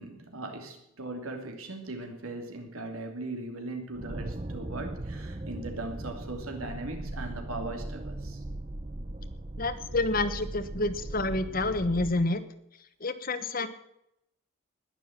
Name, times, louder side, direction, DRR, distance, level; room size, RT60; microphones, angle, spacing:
voice 1, 0.0-8.4, right 2 dB, 80° right, 4 dB, 3.0 m, -39 dB
sound 1, 3.9-12.2, right 1 dB, 25° right, 0.7 m, -38 dB
voice 2, 9.6-12.4 13.0-13.7, left 2 dB, 40° left, 11 dB, 1.2 m, -28 dB
20.5 x 7.0 x 7.5 m, 0.79 s
head